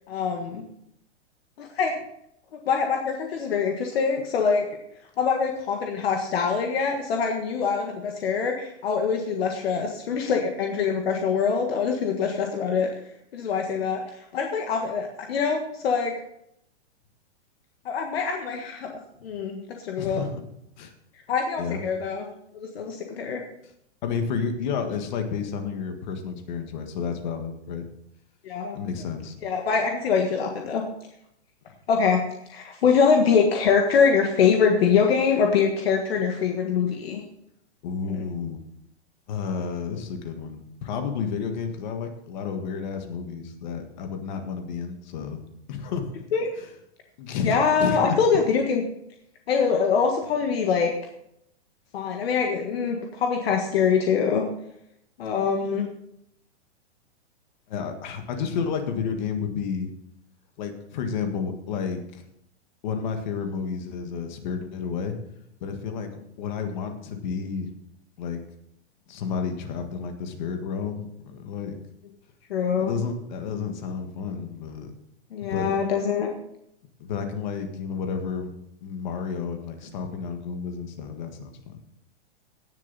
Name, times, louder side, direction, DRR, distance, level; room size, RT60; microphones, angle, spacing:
voice 1, 0.1-0.6 1.6-1.9 2.6-4.6 5.2-12.9 13.3-16.1 17.8-20.2 21.3-22.3 22.5-23.4 28.4-28.8 29.4-30.8 31.9-32.2 32.5-37.2 38.1-38.2 46.3-46.5 47.4-48.8 49.5-50.9 51.9-54.4 55.2-55.9 72.5-73.0 75.3-76.3, left 6 dB, 60° left, 2 dB, 1.6 m, -24 dB
voice 2, 20.0-20.3 20.8-20.9 21.6-21.8 24.0-27.9 28.7-29.4 37.8-38.6 39.3-45.4 45.7-46.1 46.6-46.7 47.2-48.2 57.7-59.9 60.6-62.2 62.8-65.2 65.6-67.7 68.2-68.4 69.1-71.8 72.8-74.9 75.5-75.7 77.0-78.5 78.8-81.8, left 6 dB, 40° left, 6 dB, 1.7 m, -31 dB
17.5 x 7.0 x 4.1 m, 0.76 s
hypercardioid pair, 165°, 35 cm